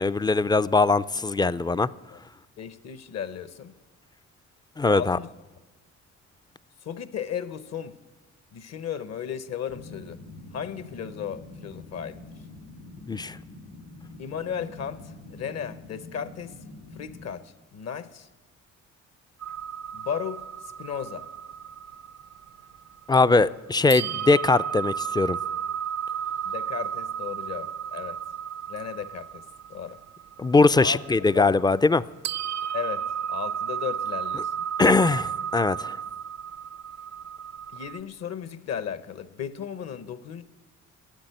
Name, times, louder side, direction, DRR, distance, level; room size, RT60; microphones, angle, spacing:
voice 1, 0.0-1.9 4.8-5.2 13.1-13.4 23.1-25.4 30.4-32.0 34.8-36.0, left 3 dB, 15° left, 16 dB, 0.3 m, -21 dB
voice 2, 2.6-3.7 4.9-5.3 6.8-8.0 8.5-10.2 10.5-12.2 14.2-16.5 17.0-18.3 19.9-20.4 20.8-21.3 26.4-28.2 28.7-29.4 29.7-30.0 30.8-31.0 31.3-31.5 32.7-34.6 37.7-40.4, left 8 dB, 60° left, 13 dB, 0.9 m, -35 dB
sound 1, 9.7-17.3, left 2 dB, 80° left, 3.7 m, -45 dB
sound 2, 19.4-23.5 23.9-32.0 32.2-38.0, right 8 dB, 65° right, 0.6 m, -34 dB
13.0 x 8.1 x 9.2 m, 1.2 s
cardioid pair, 90°, 30 cm